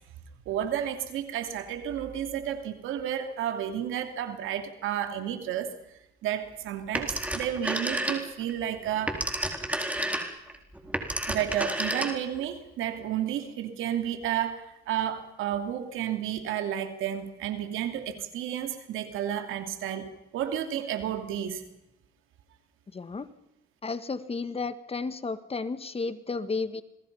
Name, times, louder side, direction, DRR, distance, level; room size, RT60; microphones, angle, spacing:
voice 1, 0.5-5.7 6.2-9.2 11.2-21.6, right 10 dB, 90° right, 6 dB, 3.0 m, -31 dB
Telephone, 6.9-8.5 8.8-12.4, right 1 dB, 5° right, 4.0 m, -31 dB
voice 2, 22.9-23.3 23.8-26.8, left 4 dB, 30° left, 12 dB, 1.6 m, -33 dB
27.5 x 21.0 x 5.6 m, 0.88 s
cardioid pair, 90°, 20 cm